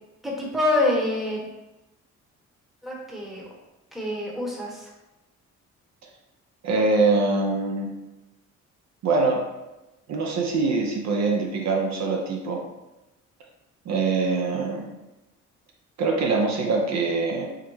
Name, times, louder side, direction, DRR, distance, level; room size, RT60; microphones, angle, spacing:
voice 1, 0.2-1.5 2.8-3.5 3.9-4.9, left 2 dB, ahead, -3 dB, 0.8 m, -26 dB
voice 2, 6.6-7.9 9.0-9.4 10.1-12.6 13.9-14.8 16.0-17.5, right 3 dB, 65° right, 1 dB, 0.6 m, -23 dB
3.6 x 2.1 x 3.1 m, 1.0 s
cardioid pair, 90°, 30 cm